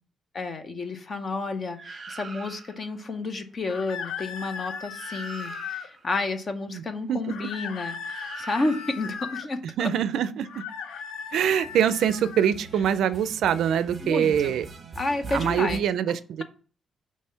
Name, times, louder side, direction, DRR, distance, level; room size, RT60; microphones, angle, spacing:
voice 1, 0.3-9.9 14.0-14.5 15.0-16.4, left 3 dB, 30° left, 8 dB, 0.6 m, -31 dB
sound 1, 1.8-2.9 4.6-4.7 4.9-6.1 8.0-9.2 11.5-15.8, right 4 dB, 30° right, 0.8 m, -42 dB
sound 2, 3.7-5.9 7.3-9.5 10.4-12.5, left 7 dB, 75° left, 0.5 m, -37 dB
voice 2, 7.1-7.5 9.8-10.5 11.3-14.7 15.3-16.4, right 9 dB, 75° right, 14 dB, 0.4 m, -24 dB
5.5 x 3.1 x 5.6 m, 0.39 s
cardioid pair, 170°, 0 cm